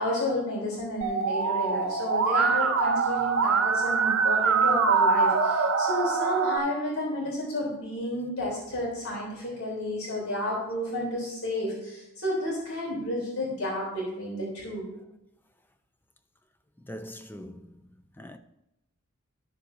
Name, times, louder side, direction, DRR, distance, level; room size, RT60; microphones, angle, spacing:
voice 1, 0.0-14.9, left 1 dB, 85° left, 3.8 m, -31 dB
Musical instrument, 1.0-6.6, right 5 dB, 80° right, 0.8 m, -24 dB
voice 2, 16.8-18.4, equal, 10° left, 0.4 m, -43 dB
13.5 x 7.2 x 2.8 m
head